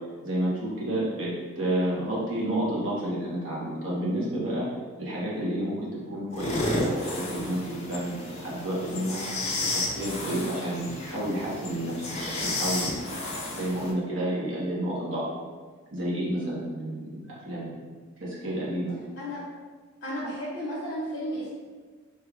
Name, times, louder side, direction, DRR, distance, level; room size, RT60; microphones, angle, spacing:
voice 1, 0.2-4.7 5.0-5.8 6.1-9.2 9.6-12.9 13.5-15.3 15.9-17.7 18.2-19.0, right 1 dB, 65° right, -6 dB, 1.0 m, -30 dB
sound 1, 6.3-13.9, left 2 dB, 30° left, 0.4 m, -32 dB
voice 2, 20.0-21.5, equal, 55° left, -9 dB, 0.8 m, -33 dB
3.1 x 2.3 x 3.4 m, 1.5 s
head